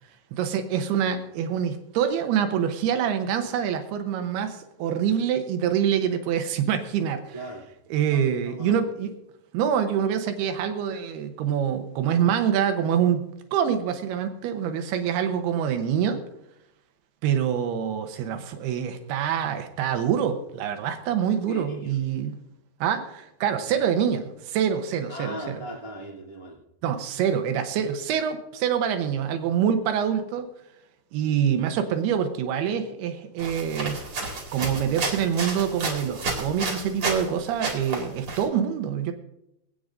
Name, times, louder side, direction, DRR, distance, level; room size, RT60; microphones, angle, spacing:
voice 1, 0.3-7.3 7.9-9.1 9.5-13.2 13.5-16.2 17.2-22.3 22.8-25.6 26.8-30.5 31.1-34.0 34.5-39.1, right 8 dB, 75° right, 7 dB, 2.7 m, -25 dB
voice 2, 7.3-7.7 8.4-8.7 21.5-21.9 23.4-23.7 25.1-26.6, right 1 dB, 15° right, -4 dB, 1.4 m, -38 dB
sound 1, 33.4-37.3 37.6-38.4, right 3 dB, 40° right, 2.3 m, -31 dB
25.0 x 8.7 x 2.6 m, 0.85 s
omnidirectional pair, 5.0 m